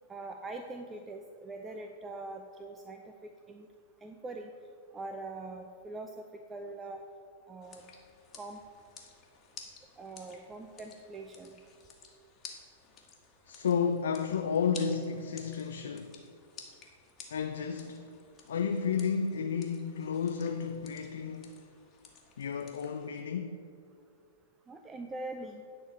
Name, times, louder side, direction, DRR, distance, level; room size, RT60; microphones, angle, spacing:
voice 1, 0.1-3.7 4.0-4.5 4.9-7.0 7.5-7.8 8.3-8.6 10.0-11.5 24.7-25.6, right 2 dB, 20° right, 0.6 m, -43 dB
sound 1, 7.6-23.2, left 6 dB, 30° left, 1.5 m, -53 dB
voice 2, 13.5-16.2 17.3-18.1 18.5-21.6 22.4-23.6, left 6 dB, 75° left, 0.5 m, -32 dB
10.5 x 4.0 x 7.2 m
hypercardioid pair, 105°, 0 cm